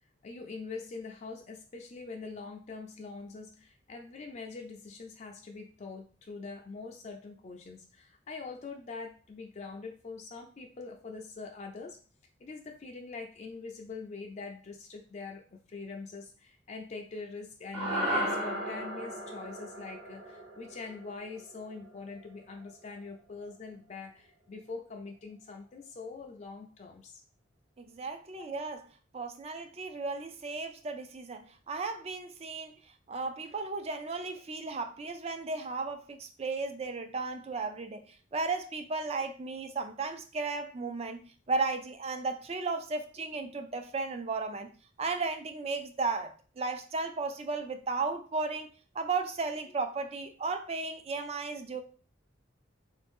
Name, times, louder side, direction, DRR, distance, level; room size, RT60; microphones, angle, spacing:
voice 1, 0.2-12.0 12.4-27.2 28.3-28.4, left 4 dB, 35° left, 0.4 m, -43 dB
sound 1, 17.7-22.2, equal, 60° right, 1.1 m, -35 dB
voice 2, 27.8-28.8 29.1-32.7 33.1-38.0 38.3-44.7 45.0-48.7 48.9-51.8, right 3 dB, 30° right, 0.4 m, -35 dB
3.8 x 2.6 x 3.5 m
head